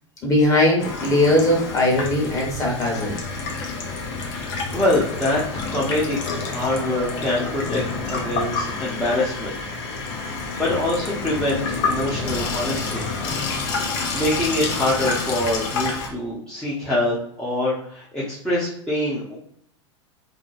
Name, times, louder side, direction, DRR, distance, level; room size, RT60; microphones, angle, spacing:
voice 1, 0.2-3.2, left 1 dB, 20° left, -3 dB, 1.2 m, -19 dB
Water tap faucet / Sink (filling or washing), 0.8-16.1, left 4 dB, 50° left, 0.7 m, -28 dB
voice 2, 4.3-5.4 5.7-7.8 8.1-10.2 10.6-13.1 14.1-19.3, left 1 dB, 5° left, -9 dB, 0.7 m, -25 dB
2.8 x 2.2 x 2.6 m, 0.66 s
hypercardioid pair, 95°, 16 cm